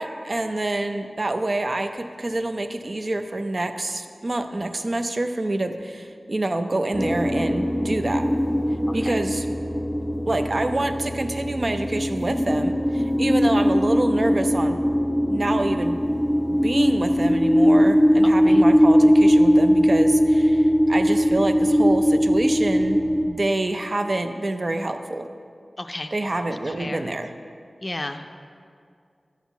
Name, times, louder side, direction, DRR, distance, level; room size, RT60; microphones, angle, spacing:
voice 1, 0.0-8.3 8.9-9.5 10.3-14.8 15.3-16.0 16.5-23.0 23.3-25.3 26.1-27.3, right 2 dB, 45° right, 7 dB, 0.6 m, -26 dB
sound 1, 6.9-23.2, equal, ahead, 1.4 m, -20 dB
voice 2, 8.9-9.2 18.2-18.6 25.8-26.1 26.5-27.1 27.8-28.4, left 1 dB, 35° left, 6 dB, 0.5 m, -34 dB
12.0 x 5.7 x 7.2 m, 2.3 s
wide cardioid pair, 85°, 0 cm